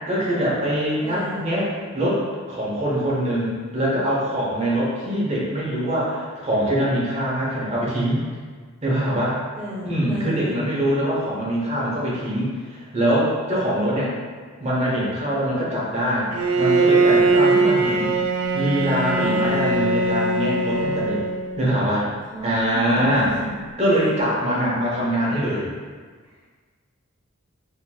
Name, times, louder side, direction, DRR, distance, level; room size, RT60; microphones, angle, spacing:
voice 1, 0.1-1.7 1.9-8.2 8.8-9.4 9.8-14.1 14.6-16.3 16.6-18.1 18.5-21.2 21.6-22.1 22.4-23.3 23.8-25.7, equal, 30° right, -6 dB, 0.8 m, -23 dB
voice 2, 1.0-1.4 9.6-10.6 17.5-17.8 22.3-23.6 23.9-24.1 26.2-26.3, equal, 5° right, -9 dB, 0.4 m, -33 dB
Bowed string instrument, 16.3-21.7, right 2 dB, 80° right, 0.3 m, -20 dB
4.2 x 2.8 x 2.3 m, 1.5 s
head